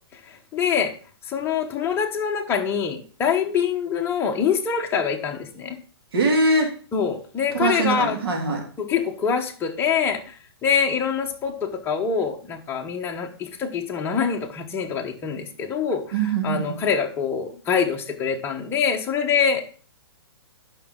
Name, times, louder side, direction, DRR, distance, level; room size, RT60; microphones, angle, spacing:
voice 1, 0.1-0.9 1.3-5.8 6.9-8.2 8.8-10.4 10.6-19.7, left 7 dB, 15° left, 1 dB, 1.1 m, -25 dB
voice 2, 6.1-6.7 7.5-8.6 16.1-16.8, right 3 dB, 70° right, 1 dB, 2.7 m, -22 dB
11.5 x 5.4 x 3.8 m, 0.41 s
hypercardioid pair, 145°, 13 cm